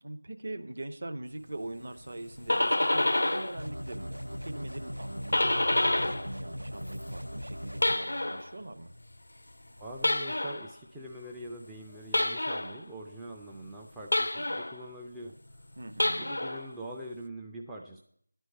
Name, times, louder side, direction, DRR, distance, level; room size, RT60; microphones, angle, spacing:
voice 1, 0.0-8.9 15.8-16.3, right 2 dB, 45° right, 7 dB, 0.8 m, -42 dB
sound 1, 2.2-3.6 3.9-6.3 6.6-8.5 10.0-10.7 12.1-12.8 14.1-14.8 15.9-16.7, left 1 dB, 60° left, 0.4 m, -28 dB
sound 2, 3.6-8.0, equal, 90° right, 0.4 m, -39 dB
voice 2, 9.8-15.3 16.1-18.0, right 1 dB, 5° right, -1 dB, 0.4 m, -43 dB
11.0 x 4.5 x 8.0 m, 0.69 s
figure-of-eight pair, 170°, 0 cm